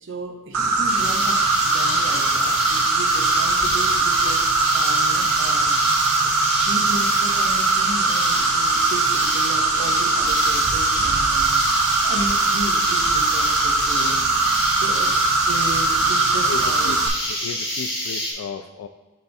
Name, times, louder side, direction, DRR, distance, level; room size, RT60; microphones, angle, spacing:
voice 1, 0.0-4.5 4.7-6.3 6.6-11.6 12.0-14.2 14.8-15.2 15.5-16.9, right 1 dB, 60° right, 2 dB, 1.0 m, -34 dB
Insect, 0.5-17.1, right 3 dB, 80° right, 0.7 m, -21 dB
sound 1, 0.9-18.3, left 1 dB, 20° left, 1.9 m, -27 dB
voice 2, 16.5-17.0 17.3-18.9, left 6 dB, 70° left, 8 dB, 0.3 m, -34 dB
7.2 x 3.5 x 4.1 m, 1.2 s
head